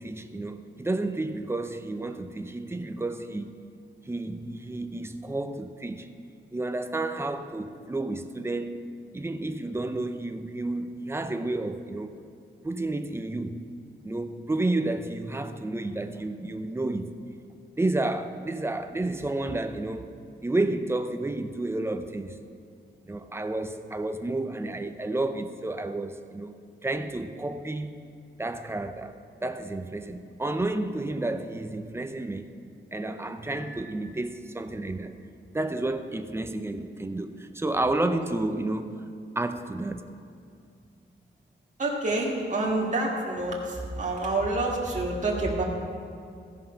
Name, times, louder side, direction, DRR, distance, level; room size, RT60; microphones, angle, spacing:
voice 1, 0.0-3.5 4.1-6.1 6.5-8.8 9.1-12.1 12.6-13.6 14.0-17.1 17.7-20.1 20.4-22.4 23.0-26.5 26.8-27.9 28.4-29.1 29.4-32.5 32.9-35.1 35.5-39.0 39.4-40.0, right 2 dB, 10° right, 8 dB, 0.6 m, -31 dB
Piano, 33.5-34.8, left 1 dB, 85° left, 1.7 m, -48 dB
voice 2, 41.8-45.6, right 2 dB, 35° right, -3 dB, 1.9 m, -27 dB
15.0 x 5.5 x 5.7 m, 2.5 s
wide cardioid pair, 115°, 21 cm